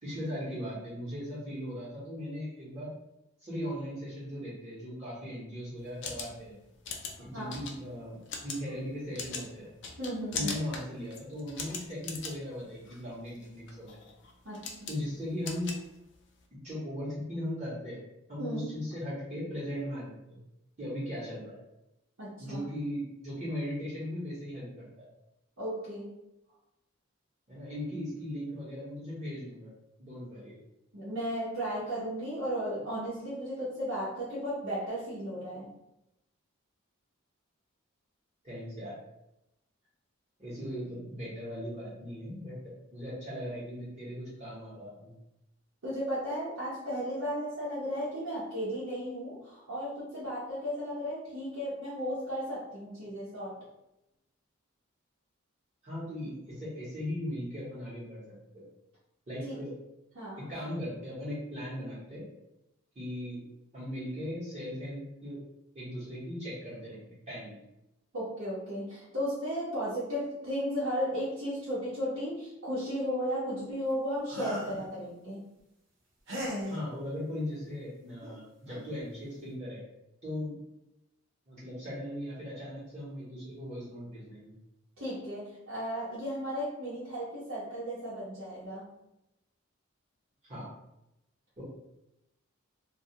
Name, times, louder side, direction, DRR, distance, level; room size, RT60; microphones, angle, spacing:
voice 1, 0.0-2.9 3.4-6.5 7.2-9.7 10.3-14.0 14.9-15.7 16.5-18.0 18.3-20.4 20.8-21.6 22.4-24.9 27.5-29.7 30.0-30.6 38.4-39.0 40.4-45.1 55.8-58.2 58.5-58.7 59.3-59.7 60.5-62.2 62.9-63.4 63.7-65.4 65.7-67.6 76.6-79.8 80.2-80.5 81.5-84.5 90.4-90.7 91.6-91.7, equal, 35° right, -9 dB, 0.9 m, -38 dB
sound 1, 5.8-16.4, left 5 dB, 55° left, 0.4 m, -42 dB
voice 2, 10.0-10.6 14.4-15.0 18.4-18.8 22.2-22.6 25.6-26.1 30.9-35.7 45.8-53.6 59.4-59.6 60.1-60.5 68.1-75.4 85.0-88.9, equal, 90° right, -11 dB, 0.9 m, -35 dB
sound 2, 74.3-74.8 76.3-76.8 78.2-78.3 78.7-78.9, equal, 60° right, 0.9 m, -36 dB
2.3 x 2.3 x 2.8 m, 0.88 s
head